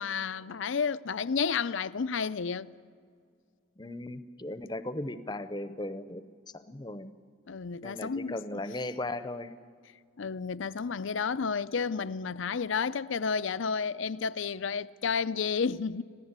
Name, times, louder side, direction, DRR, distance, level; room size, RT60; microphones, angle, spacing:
voice 1, 0.0-2.7 7.5-8.6 10.2-16.0, left 5 dB, 75° left, 0.5 m, -31 dB
voice 2, 3.8-6.2 6.5-7.1 7.8-9.5, left 1 dB, 20° left, 0.8 m, -37 dB
26.5 x 16.0 x 8.1 m
head